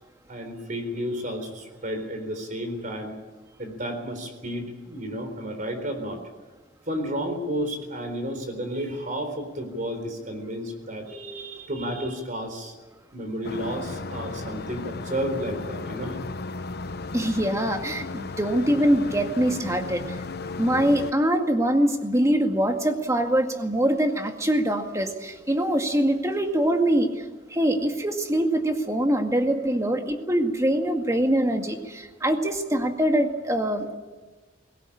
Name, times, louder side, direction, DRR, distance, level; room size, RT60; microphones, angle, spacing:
voice 1, 0.3-3.2 3.6-6.2 6.9-12.7 13.1-16.2, equal, 45° right, 6 dB, 4.1 m, -32 dB
sound 1, 13.4-21.1, left 3 dB, 60° left, 1.0 m, -35 dB
voice 2, 17.1-20.2 20.6-27.1 27.5-33.9, right 1 dB, 15° right, 4 dB, 2.1 m, -23 dB
21.5 x 18.0 x 8.8 m, 1.2 s
head